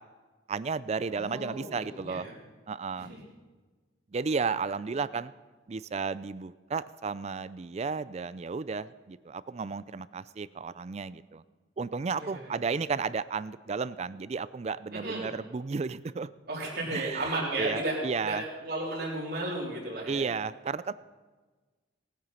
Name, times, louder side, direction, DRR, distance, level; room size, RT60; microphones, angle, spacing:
voice 1, 0.5-2.3 2.7-3.1 4.1-5.3 5.7-11.4 11.8-16.3 16.9-18.4 20.1-20.9, right 5 dB, 35° right, 17 dB, 0.4 m, -33 dB
voice 2, 1.1-2.3 3.0-3.2 12.2-12.7 14.9-15.3 16.5-20.3, right 2 dB, 55° right, -4 dB, 3.8 m, -34 dB
19.5 x 9.1 x 5.6 m, 1.3 s
head